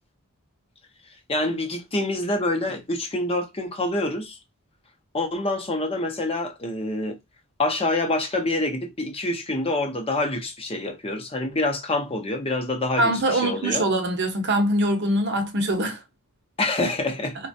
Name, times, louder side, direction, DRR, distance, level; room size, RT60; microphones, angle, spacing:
voice 1, 1.3-4.4 5.1-7.2 7.6-13.9 16.6-17.4, left 2 dB, 25° left, 0.7 m, -26 dB
voice 2, 13.0-16.0, right 1 dB, 50° right, 0.7 m, -23 dB
4.1 x 2.2 x 2.6 m
head